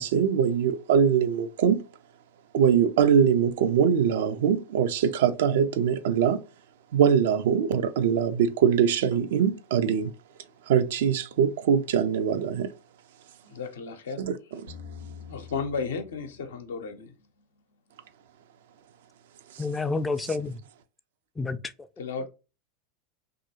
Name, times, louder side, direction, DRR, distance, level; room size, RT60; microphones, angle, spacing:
voice 1, 0.0-1.8 2.5-6.4 6.9-10.1 10.7-12.7 14.2-14.6, right 7 dB, 65° right, 0.4 m, -23 dB
voice 2, 13.4-14.2 15.1-17.1 22.0-22.3, left 5 dB, 70° left, 0.6 m, -34 dB
sound 1, 14.7-17.6, left 6 dB, 80° right, 1.0 m, -46 dB
voice 3, 19.6-20.6 21.4-21.7, left 3 dB, 15° left, 0.3 m, -29 dB
2.9 x 2.5 x 2.8 m
figure-of-eight pair, 85°, 0 cm